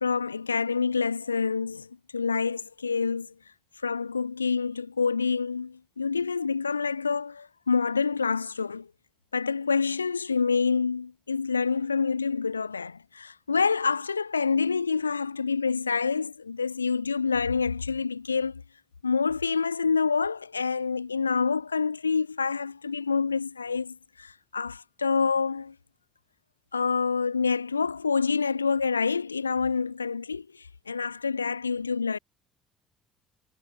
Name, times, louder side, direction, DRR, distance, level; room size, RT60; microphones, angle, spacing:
voice 1, 0.0-3.3 3.8-8.9 9.3-18.6 19.0-25.7 26.7-32.2, left 5 dB, 90° left, 0.9 m, -27 dB
figure-of-eight pair, 55°, 0 cm